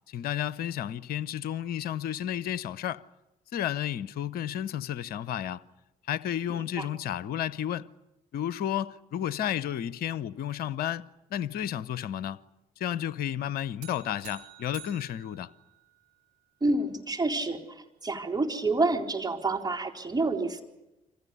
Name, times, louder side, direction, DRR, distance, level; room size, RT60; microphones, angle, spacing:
voice 1, 0.1-3.0 3.5-5.6 6.1-7.9 8.3-11.0 11.3-12.4 12.8-15.5, left 10 dB, 55° left, 0.9 m, -32 dB
sound 1, 13.8-16.3, right 12 dB, 65° right, 2.1 m, -50 dB
voice 2, 16.6-20.6, right 2 dB, 20° right, 4.2 m, -28 dB
28.5 x 26.0 x 6.9 m
figure-of-eight pair, 45°, 19 cm